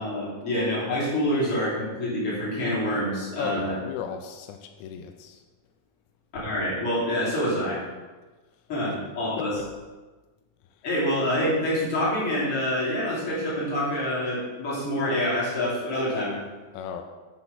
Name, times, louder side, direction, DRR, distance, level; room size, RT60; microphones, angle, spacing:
voice 1, 0.0-3.7 6.4-7.8 8.7-9.5 10.8-16.4, left 1 dB, 35° left, -8 dB, 3.5 m, -26 dB
voice 2, 3.4-5.4 9.4-9.5 10.7-10.9 16.7-17.0, left 8 dB, 85° left, 5 dB, 2.8 m, -36 dB
9.9 x 4.5 x 5.9 m, 1.3 s
omnidirectional pair, 4.9 m